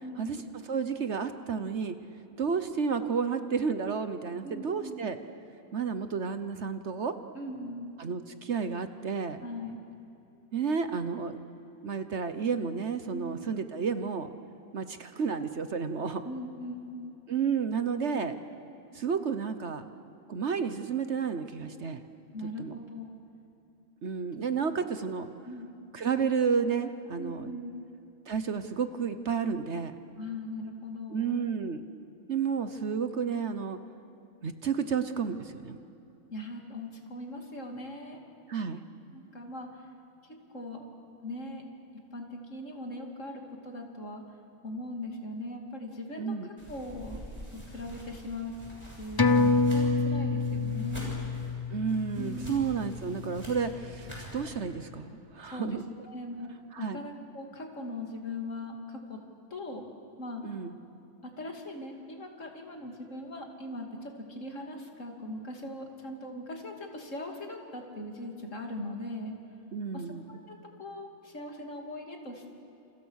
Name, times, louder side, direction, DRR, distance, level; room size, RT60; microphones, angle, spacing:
voice 1, 0.0-0.5 4.4-5.2 7.3-7.9 9.4-9.8 13.1-13.4 16.2-17.1 22.3-23.1 25.4-25.7 27.2-27.8 30.2-31.5 36.3-38.2 39.1-39.9 40.2-40.9 41.2-41.6 42.1-44.4 44.6-47.2 47.5-48.5 48.9-51.2 52.2-52.8 55.4-55.8 56.0-59.2 59.5-59.9 60.2-60.6 61.2-69.4 69.9-72.5, left 1 dB, 55° left, 2 dB, 3.1 m, -40 dB
voice 2, 0.7-2.0 2.4-5.2 5.7-7.2 8.0-9.4 10.5-11.4 11.8-14.3 14.7-16.2 17.3-18.3 18.9-19.9 20.3-22.0 22.6-22.7 24.0-25.3 25.9-27.5 28.3-30.0 31.1-31.8 32.3-33.8 34.4-35.8 38.5-38.8 46.2-46.5 51.7-55.1 55.3-55.8 56.7-57.0 60.4-60.8 69.7-70.2, right 6 dB, 55° right, 10 dB, 1.2 m, -31 dB
sound 1, 46.6-54.5, equal, 20° right, 6.8 m, -46 dB
sound 2, 49.2-54.1 54.5-54.6, left 4 dB, 25° left, 0.6 m, -28 dB
29.0 x 28.5 x 6.5 m, 2.9 s
omnidirectional pair, 1.5 m